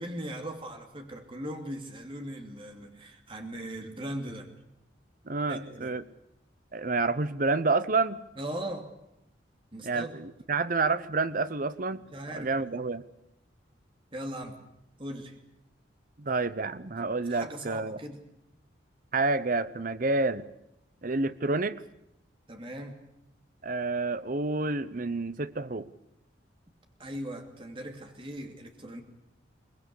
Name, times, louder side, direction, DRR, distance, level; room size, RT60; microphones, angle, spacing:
voice 1, 0.0-4.5 5.5-5.9 8.4-8.9 9.7-10.2 12.1-12.8 14.1-14.6 15.0-15.4 17.3-18.2 22.5-23.0 27.0-29.0, right 1 dB, 30° right, 4 dB, 2.7 m, -39 dB
voice 2, 5.3-6.0 6.7-8.2 9.8-12.0 12.3-13.0 16.2-18.0 19.1-20.4 21.0-21.8 23.6-25.9, right 3 dB, 50° right, 14 dB, 0.9 m, -29 dB
23.5 x 19.5 x 8.5 m, 0.81 s
head